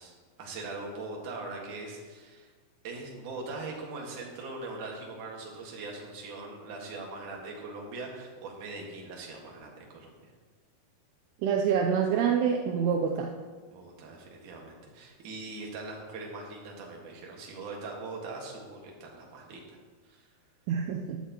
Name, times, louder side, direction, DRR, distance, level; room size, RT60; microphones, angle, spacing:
voice 1, 0.0-2.5 2.8-10.1 13.7-19.8 20.0-20.3, right 3 dB, 55° right, -1 dB, 2.9 m, -41 dB
voice 2, 11.4-13.3 20.7-21.2, right 7 dB, 80° right, 1 dB, 2.6 m, -26 dB
15.5 x 10.0 x 3.0 m, 1.4 s
omnidirectional pair, 4.8 m